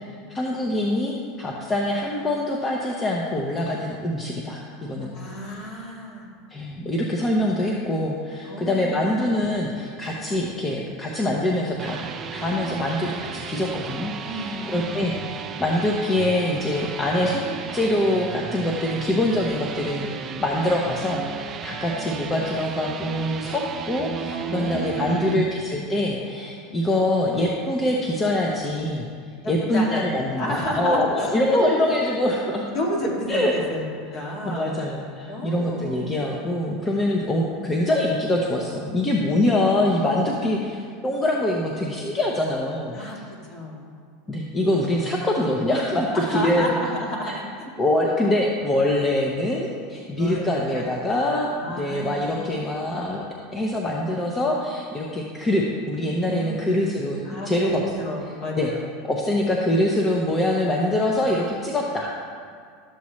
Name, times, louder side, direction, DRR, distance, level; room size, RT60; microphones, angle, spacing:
voice 1, 0.3-5.1 6.5-12.0 12.3-15.1 15.6-17.4 17.7-29.1 29.5-32.6 33.3-33.5 34.5-43.0 44.3-46.7 47.2-47.3 47.8-51.5 51.8-53.2 53.5-57.8 58.6-58.7 59.1-62.3, left 1 dB, 20° left, -2 dB, 0.9 m, -24 dB
voice 2, 5.0-6.3 8.4-9.1 14.2-15.1 24.3-25.3 29.4-31.9 32.7-33.8 34.1-34.9 35.3-36.0 40.2-40.6 42.9-43.2 43.5-43.9 46.1-47.5 50.2-51.0 51.2-52.5 56.2-56.8 57.2-58.9, equal, 45° left, -2 dB, 2.3 m, -31 dB
sound 1, 11.6-25.4, right 6 dB, 30° right, 0.5 m, -34 dB
12.5 x 7.2 x 3.2 m, 2.1 s
supercardioid pair, 120°, 0 cm